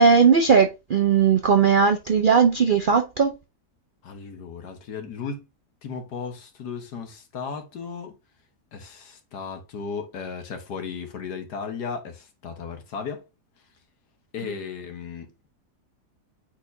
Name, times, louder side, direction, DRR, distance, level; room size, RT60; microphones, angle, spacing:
voice 1, 0.0-3.3, right 6 dB, 65° right, 0.5 m, -18 dB
voice 2, 4.0-5.5 5.8-8.2 8.7-13.2 14.3-15.3, left 5 dB, 85° left, 1.8 m, -35 dB
8.4 x 4.3 x 2.7 m
omnidirectional pair, 1.7 m